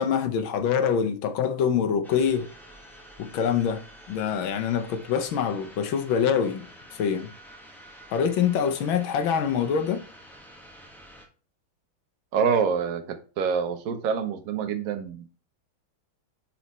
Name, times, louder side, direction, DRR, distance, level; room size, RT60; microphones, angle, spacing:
voice 1, 0.0-2.5 3.2-6.6 6.9-7.3 8.1-10.0, left 7 dB, 80° left, 1.5 m, -25 dB
sound 1, 2.0-11.3, equal, ahead, 0.5 m, -49 dB
voice 2, 12.3-15.3, right 6 dB, 60° right, 1.0 m, -26 dB
5.8 x 4.2 x 4.1 m
omnidirectional pair, 2.2 m